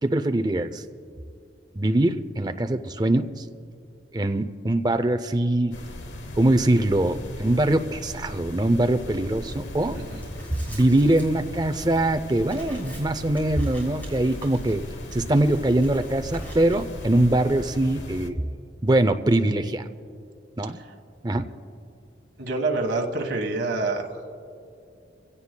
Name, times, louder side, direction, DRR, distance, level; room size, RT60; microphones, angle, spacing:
voice 1, 0.0-0.8 1.7-3.4 4.1-5.8 6.4-10.0 10.5-14.8 15.1-18.3 18.8-19.8 20.6-20.8 21.2-21.5, right 1 dB, 20° right, 8 dB, 0.5 m, -22 dB
sound 1, 5.7-18.3, left 1 dB, 80° left, 1.1 m, -39 dB
Writing, 9.4-17.2, equal, 10° left, 3.6 m, -42 dB
voice 2, 9.9-10.2 22.4-24.1, right 3 dB, 70° right, 3 dB, 1.5 m, -27 dB
26.5 x 16.5 x 2.3 m, 2.5 s
head